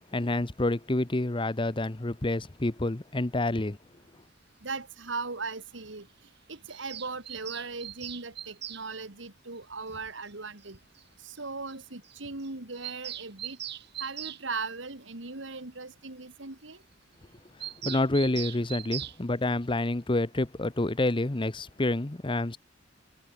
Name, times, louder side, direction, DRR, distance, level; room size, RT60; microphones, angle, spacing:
voice 1, 0.1-3.8 17.8-22.6, left 2 dB, 25° left, 0.9 m, -28 dB
voice 2, 4.6-6.1 6.5-10.8 11.2-13.6 14.0-16.8, right 4 dB, 80° right, 2.4 m, -38 dB
Bird vocalization bird call bird song, 6.7-8.8 10.3-10.4 10.6-10.7 11.0-11.1 11.4-11.5 11.7-11.8 12.0-12.2 12.4-14.4 17.6-19.2, right 11 dB, 60° right, 4.4 m, -40 dB
head